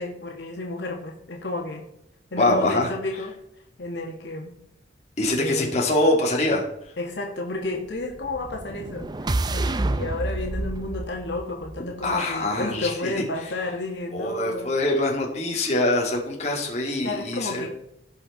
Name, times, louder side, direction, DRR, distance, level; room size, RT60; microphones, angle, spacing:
voice 1, 0.0-1.8 2.3-3.4 3.8-4.5 5.4-5.8 7.0-9.1 9.5-14.7 17.0-17.7, left 2 dB, 75° left, 0 dB, 1.9 m, -31 dB
voice 2, 2.4-2.9 5.2-6.6 12.0-13.5 14.1-17.7, left 2 dB, 35° left, -1 dB, 2.7 m, -24 dB
sound 1, 8.1-12.3, right 2 dB, 20° right, 0.4 m, -29 dB
17.0 x 5.7 x 4.2 m, 0.79 s
head